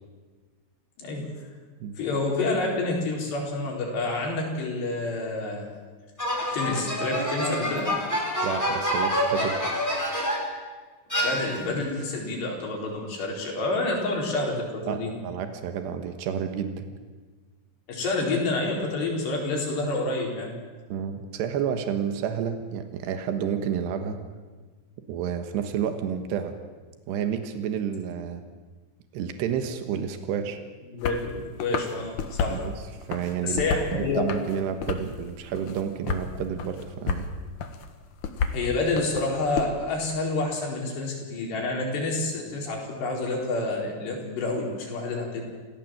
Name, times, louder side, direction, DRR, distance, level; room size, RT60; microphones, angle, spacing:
voice 1, 1.0-1.3 2.0-5.7 6.5-7.9 11.2-15.1 17.9-20.5 30.9-32.6 33.4-34.2 38.5-45.4, left 2 dB, 80° left, -1 dB, 6.5 m, -28 dB
sound 1, 6.2-10.6 11.1-11.9, equal, 5° left, 4.1 m, -27 dB
voice 2, 8.4-9.6 14.9-16.9 20.9-24.2 25.1-26.6 27.1-28.4 29.1-30.6 32.5-32.7 33.1-37.3, right 8 dB, 85° right, 7 dB, 3.5 m, -30 dB
sound 2, 31.0-31.2 31.6-32.6 33.0-33.9 34.3-35.2 35.5-36.3 36.6-37.3 37.6-39.6, left 6 dB, 60° left, 2.5 m, -31 dB
27.0 x 16.5 x 7.8 m, 1.4 s
omnidirectional pair, 4.8 m